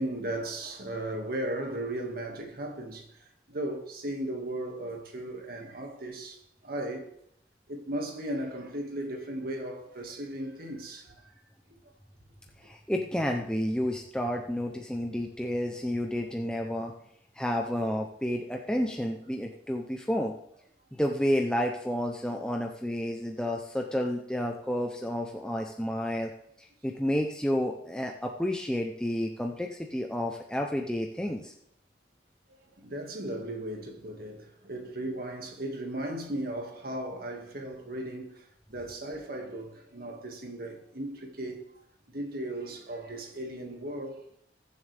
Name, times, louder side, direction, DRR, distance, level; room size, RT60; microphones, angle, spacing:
voice 1, 0.0-7.1 7.7-11.4 32.5-41.8 42.1-44.3, right 1 dB, 55° right, 2.1 m, -36 dB
voice 2, 12.6-16.9 17.4-20.3 20.9-26.3 26.8-31.5, equal, 5° left, 0.7 m, -30 dB
21.0 x 7.2 x 3.5 m
head